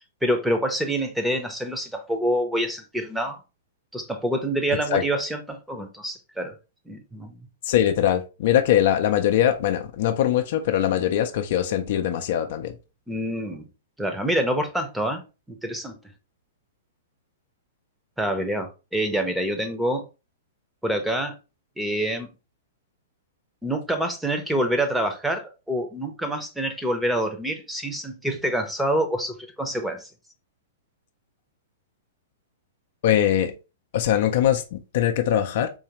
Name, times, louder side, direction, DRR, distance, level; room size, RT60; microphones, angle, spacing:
voice 1, 0.2-3.4 3.9-6.5 6.9-7.4 13.1-13.6 14.0-15.2 15.5-16.0 18.2-20.0 20.8-21.4 21.8-22.3 23.6-30.1, right 1 dB, 5° right, 0.7 m, -26 dB
voice 2, 7.7-12.7 33.0-33.5 33.9-35.7, left 11 dB, 55° left, 0.5 m, -22 dB
3.8 x 3.1 x 2.9 m
hypercardioid pair, 115°, 0 cm